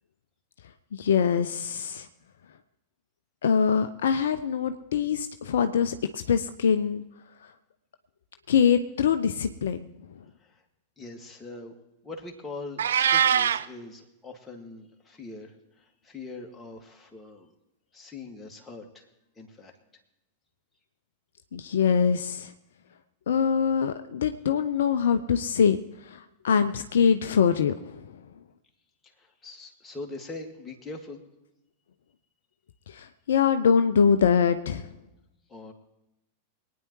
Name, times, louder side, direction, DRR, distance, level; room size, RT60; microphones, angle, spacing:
voice 1, 0.9-2.1 3.4-7.0 8.5-9.9 21.5-22.5 23.3-28.0 32.9-34.9, left 7 dB, 65° left, 9 dB, 0.5 m, -24 dB
voice 2, 11.0-11.7 12.0-17.5 17.9-19.1 19.4-19.7 29.2-31.2 35.5-35.7, left 3 dB, 10° left, 1 dB, 2.0 m, -42 dB
Meow, 12.8-13.7, right 9 dB, 65° right, 0.4 m, -22 dB
24.0 x 9.4 x 3.2 m, 0.93 s
figure-of-eight pair, 90°, 0 cm